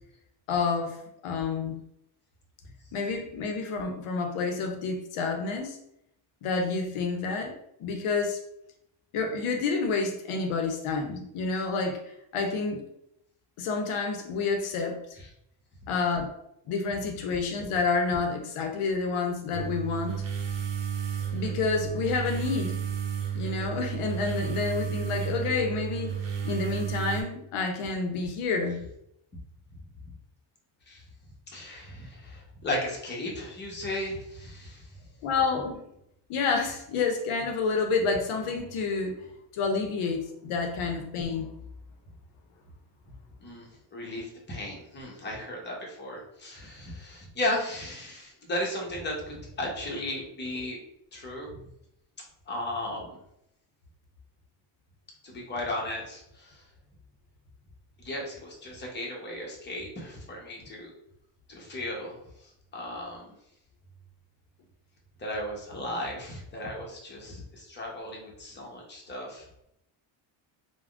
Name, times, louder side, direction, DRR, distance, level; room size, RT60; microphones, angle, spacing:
voice 1, 0.5-1.0 1.2-1.8 2.9-5.8 6.4-8.4 9.1-12.0 12.3-12.9 13.6-15.2 15.9-16.3 16.7-20.2 21.3-22.8 23.3-26.2 26.4-28.8 35.2-35.8 36.3-39.3 39.5-41.5, left 4 dB, 80° left, 3 dB, 0.7 m, -29 dB
sound 1, 19.5-27.2, right 7 dB, 60° right, 0.7 m, -32 dB
voice 2, 31.5-34.9 43.4-50.8 51.1-51.6 52.2-53.2 55.2-56.6 58.0-60.9 61.5-63.3 65.2-69.6, left 1 dB, 20° left, -2 dB, 0.8 m, -35 dB
3.4 x 2.1 x 2.4 m, 0.78 s
cardioid pair, 135°, 50 cm